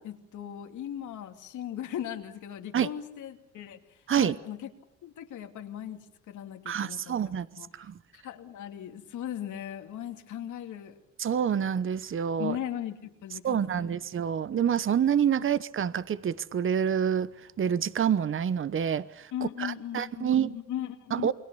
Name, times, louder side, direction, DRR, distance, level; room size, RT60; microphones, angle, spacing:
voice 1, 0.0-4.7 5.0-7.2 7.6-7.7 8.1-11.0 12.4-13.9 19.3-21.3, left 10 dB, 80° left, 2.6 m, -38 dB
voice 2, 6.7-7.5 7.7-8.0 11.2-12.6 13.4-19.3 19.6-20.6 21.1-21.3, right 8 dB, 45° right, 1.0 m, -27 dB
28.5 x 22.5 x 7.0 m
cardioid pair, 90°, 30 cm